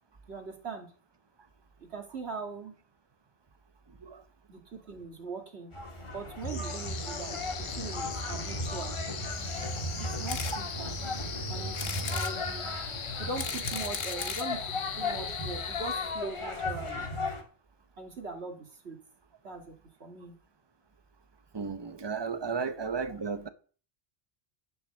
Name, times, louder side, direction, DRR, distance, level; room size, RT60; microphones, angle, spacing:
voice 1, 0.3-0.9 1.8-2.7 4.5-5.7 6.1-7.4 7.7-9.0 10.0-11.0 11.5-11.8 12.1-12.7 13.2-17.1 18.0-19.0 19.4-20.3, right 4 dB, 85° right, 2.1 m, -41 dB
sound 1, 5.7-17.4, left 2 dB, 30° left, 1.7 m, -36 dB
sound 2, 6.4-16.7, left 6 dB, 90° left, 1.3 m, -40 dB
sound 3, 10.3-10.6 11.1-11.2 11.7-12.3 13.1-14.5 15.3-15.4 15.6-15.7 15.9-16.0, left 6 dB, 70° left, 1.2 m, -37 dB
voice 2, 21.5-23.5, right 5 dB, 30° right, 0.7 m, -34 dB
9.7 x 6.0 x 6.3 m
omnidirectional pair, 1.1 m